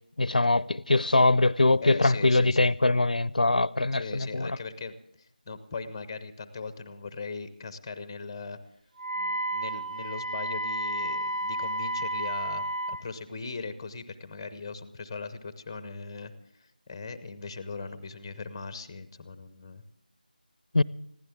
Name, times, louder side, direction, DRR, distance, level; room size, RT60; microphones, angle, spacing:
voice 1, 0.2-4.6 20.7-20.8, left 2 dB, 60° left, 0.5 m, -23 dB
voice 2, 1.8-2.7 3.9-4.9 5.5-8.6 9.1-16.3 16.6-19.8, left 4 dB, 10° left, 0.7 m, -39 dB
Wind instrument woodwind instrument, 9.0-13.0, right 1 dB, 50° right, 0.7 m, -31 dB
21.5 x 16.0 x 3.6 m
figure-of-eight pair, 170°, 5 cm